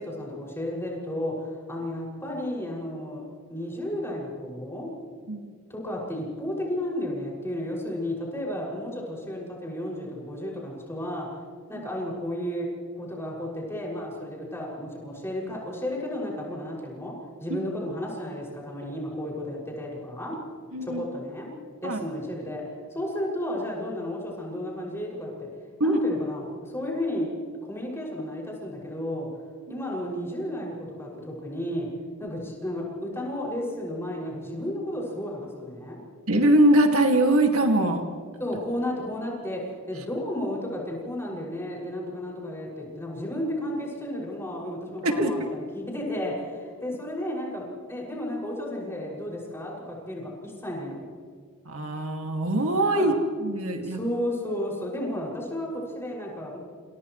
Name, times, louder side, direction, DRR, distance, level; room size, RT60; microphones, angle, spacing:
voice 1, 0.0-3.2 3.5-4.9 5.7-11.3 11.7-20.4 20.8-21.5 21.8-25.5 25.8-27.3 27.6-29.3 29.7-31.9 32.2-36.0 38.4-51.1 52.9-53.2 53.8-56.6, left 1 dB, 10° left, -3 dB, 6.4 m, -33 dB
voice 2, 20.7-21.0 21.8-22.0 25.8-26.0 29.7-29.8 36.3-38.0 45.0-45.3 51.7-53.1 53.4-54.0, right 1 dB, 80° right, 3 dB, 2.3 m, -22 dB
29.0 x 28.5 x 3.2 m, 2.1 s
head